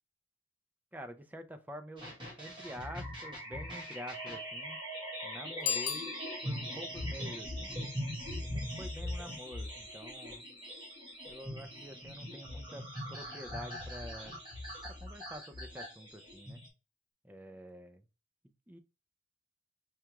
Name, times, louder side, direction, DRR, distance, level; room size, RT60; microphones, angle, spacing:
voice 1, 0.9-2.1 2.4-4.8 5.2-6.1 6.4-7.8 8.4-10.5 11.3-14.3 14.8-16.6 17.2-18.0 18.4-18.8, equal, 10° right, 6 dB, 0.4 m, -48 dB
sound 1, 2.0-16.7, equal, 25° right, 1.2 m, -41 dB
Bicycle bell, 5.6-6.8, left 8 dB, 80° left, 0.6 m, -36 dB
4.7 x 2.3 x 2.9 m, 0.30 s
head